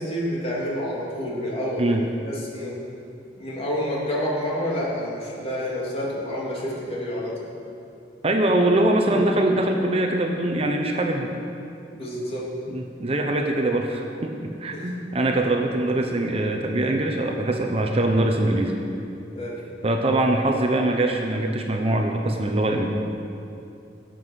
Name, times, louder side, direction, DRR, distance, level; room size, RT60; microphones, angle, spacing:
voice 1, 0.0-2.8 3.4-7.3 9.0-9.3 11.9-12.5 14.7-15.0 19.3-19.6, equal, 35° left, -5 dB, 2.9 m, -29 dB
voice 2, 8.2-11.3 12.7-18.7 19.8-22.9, right 1 dB, 35° right, 3 dB, 0.9 m, -23 dB
16.5 x 7.7 x 6.3 m, 2.7 s
head